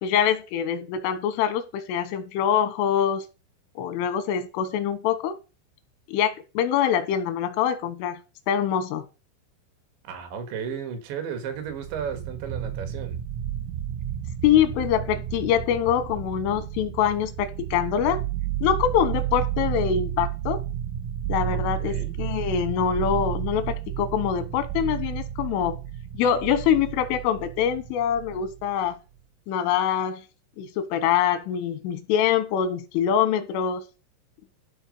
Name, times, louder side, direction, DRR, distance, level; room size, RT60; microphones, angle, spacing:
voice 1, 0.0-3.3 3.8-5.4 6.1-8.2 8.5-9.0 14.4-18.2 18.6-20.6 21.3-25.8 26.2-29.0 29.5-30.2 30.6-33.8, left 9 dB, 90° left, 3.6 m, -24 dB
voice 2, 10.1-13.2 21.5-22.1, right 7 dB, 70° right, 3.6 m, -34 dB
sound 1, 11.5-28.9, right 11 dB, 90° right, 3.6 m, -32 dB
12.5 x 4.3 x 5.3 m
omnidirectional pair, 5.6 m